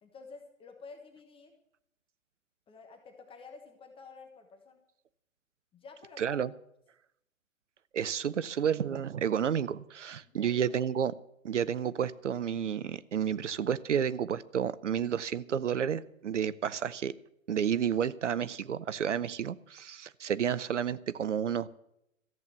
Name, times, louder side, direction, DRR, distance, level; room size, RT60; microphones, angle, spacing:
voice 1, 0.0-1.5 2.7-4.8 5.7-6.4 10.2-10.8, left 4 dB, 15° left, 5 dB, 1.3 m, -51 dB
voice 2, 6.2-6.5 7.9-11.1 11.4-17.1 17.5-21.7, right 8 dB, 65° right, 17 dB, 0.7 m, -31 dB
14.0 x 8.4 x 8.3 m, 0.79 s
figure-of-eight pair, 120°, 40 cm